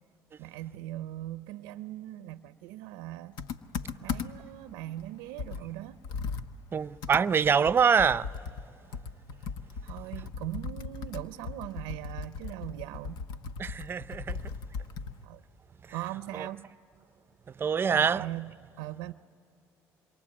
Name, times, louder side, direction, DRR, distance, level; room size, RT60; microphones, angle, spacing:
voice 1, 0.4-3.4 4.0-6.0 9.8-13.2 15.2-15.4 15.9-16.7 17.8-18.5 18.8-19.1, right 15 dB, 90° right, 0.6 m, -40 dB
Computer keyboard, 3.4-4.5 5.0-5.1 5.4-15.2, left 5 dB, 75° left, 1.1 m, -38 dB
voice 2, 6.7-8.4 13.6-14.5 15.8-16.0 16.3-16.5 17.5-18.3, right 6 dB, 35° right, 0.6 m, -25 dB
27.5 x 23.0 x 8.6 m
supercardioid pair, 90°, 7 cm